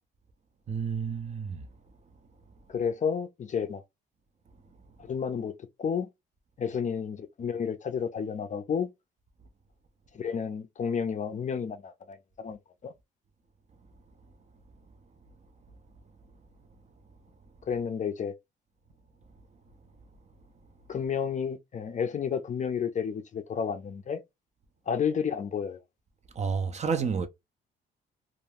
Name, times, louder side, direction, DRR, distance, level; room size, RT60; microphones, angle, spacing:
voice 1, 0.7-1.6 26.4-27.3, right 6 dB, 35° right, 0.5 m, -30 dB
voice 2, 2.7-3.8 5.0-5.5 5.8-6.1 6.6-8.9 10.1-12.9 17.6-18.3 20.9-24.2 24.9-25.8, left 7 dB, 40° left, 0.4 m, -31 dB
2.4 x 2.2 x 3.3 m
cardioid pair, 90°, 20 cm